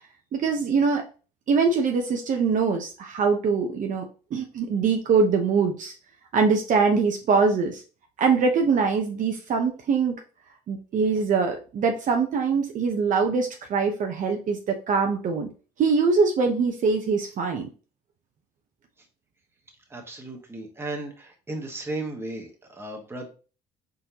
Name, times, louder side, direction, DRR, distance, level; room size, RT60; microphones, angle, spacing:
voice 1, 0.3-1.0 1.5-4.1 4.3-5.9 6.3-7.8 8.2-10.1 10.7-15.5 15.8-17.7, right 5 dB, 50° right, 3 dB, 0.8 m, -23 dB
voice 2, 19.9-23.3, right 2 dB, 15° right, 2 dB, 1.2 m, -35 dB
4.2 x 3.9 x 2.9 m, 0.35 s
cardioid pair, 110°, 17 cm